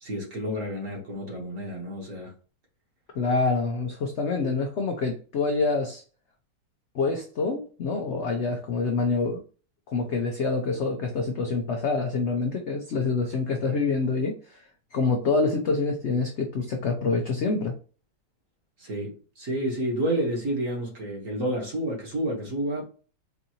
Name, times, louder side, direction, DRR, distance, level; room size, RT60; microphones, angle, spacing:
voice 1, 0.0-2.3 18.8-22.8, right 1 dB, 50° right, 1.6 m, -30 dB
voice 2, 3.1-6.0 6.9-9.4 9.9-17.7, left 4 dB, 75° left, 0.6 m, -26 dB
4.6 x 2.6 x 2.8 m
omnidirectional pair, 1.9 m